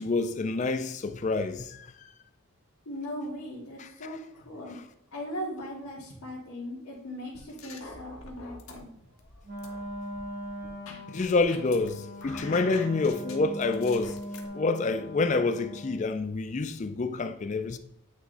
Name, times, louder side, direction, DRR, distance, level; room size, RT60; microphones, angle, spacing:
voice 1, 0.0-1.9 3.8-4.2 11.1-14.2 14.5-17.8, left 3 dB, 30° left, 0.4 m, -28 dB
voice 2, 2.8-4.2 4.4-4.8 5.1-8.9, equal, 85° left, 1.5 m, -38 dB
sound 1, 7.3-8.8 9.2-11.9 12.2-14.5, left 4 dB, 70° left, 0.9 m, -45 dB
Wind instrument woodwind instrument, 9.4-16.1, equal, 45° right, 1.1 m, -40 dB
8.4 x 3.1 x 3.9 m
head